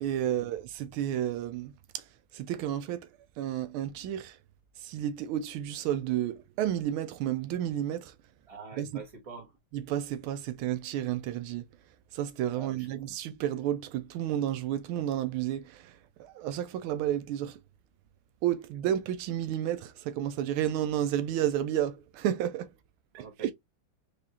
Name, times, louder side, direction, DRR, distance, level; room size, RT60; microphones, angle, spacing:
voice 1, 0.0-2.1 2.3-3.1 3.4-4.4 4.8-8.2 8.8-9.0 9.7-11.7 12.1-17.6 18.4-22.7 23.1-23.5, right 11 dB, 85° right, 1.4 m, -31 dB
voice 2, 8.5-9.6 12.5-12.9 23.2-23.5, right 5 dB, 20° right, 1.2 m, -45 dB
4.8 x 2.9 x 2.7 m
omnidirectional pair, 2.3 m